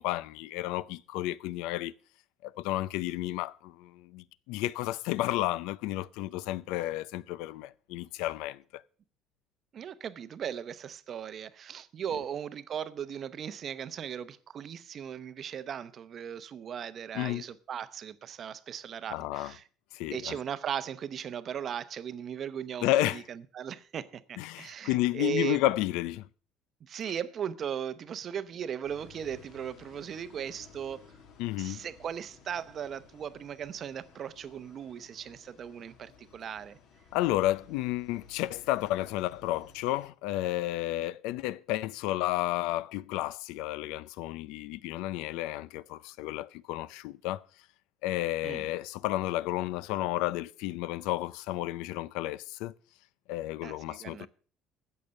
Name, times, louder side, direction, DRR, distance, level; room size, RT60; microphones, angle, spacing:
voice 1, 0.0-1.9 2.4-8.8 17.1-17.5 19.1-19.5 19.9-20.4 22.8-23.2 24.4-26.3 31.4-31.8 37.1-47.4 48.0-52.7 53.3-54.3, left 16 dB, 80° left, 0.5 m, -32 dB
voice 2, 9.7-19.6 20.1-25.6 26.8-31.0 31.6-36.8 48.4-48.7 53.6-54.3, right 8 dB, 35° right, 0.7 m, -38 dB
sound 1, 28.8-40.1, left 5 dB, 50° left, 2.1 m, -57 dB
15.5 x 6.7 x 6.4 m
cardioid pair, 165°, 0 cm